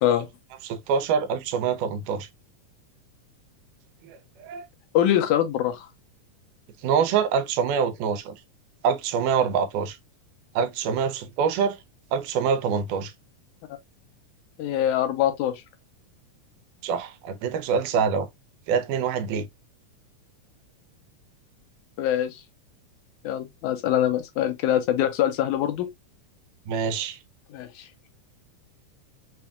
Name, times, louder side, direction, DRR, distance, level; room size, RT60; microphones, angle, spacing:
voice 1, 0.6-2.3 4.0-4.6 6.8-8.3 8.8-10.0 10.6-11.8 12.1-13.1 16.8-18.3 18.7-19.5 26.7-27.2, right 6 dB, 85° right, 2.2 m, -25 dB
voice 2, 4.9-5.9 14.6-15.6 22.0-22.4 23.2-25.9 27.5-27.9, left 11 dB, 85° left, 2.1 m, -24 dB
5.7 x 2.6 x 2.2 m
omnidirectional pair, 3.6 m